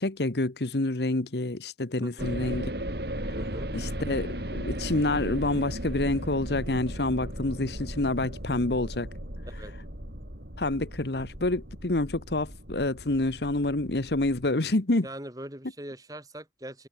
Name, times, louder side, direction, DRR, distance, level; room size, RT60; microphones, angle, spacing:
voice 1, 0.0-2.6 3.7-9.1 10.6-15.1, left 2 dB, 70° left, 1.3 m, -28 dB
voice 2, 2.0-2.4 3.4-3.7 9.6-9.7 15.0-16.9, right 1 dB, 20° right, 7.6 m, -41 dB
sound 1, 2.2-14.5, right 1 dB, 65° right, 7.7 m, -36 dB
head